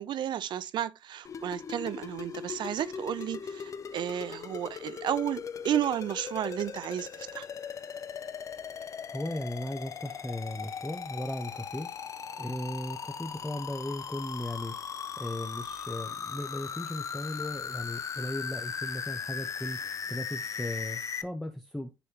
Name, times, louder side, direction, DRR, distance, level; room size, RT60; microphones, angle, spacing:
voice 1, 0.0-3.6 3.9-7.4, right 10 dB, 65° right, 0.5 m, -32 dB
sound 1, 1.2-21.2, left 7 dB, 40° left, 0.5 m, -38 dB
voice 2, 9.1-11.9 12.4-21.9, left 1 dB, 5° left, 0.7 m, -37 dB
10.0 x 3.4 x 2.8 m
cardioid pair, 125°, 9 cm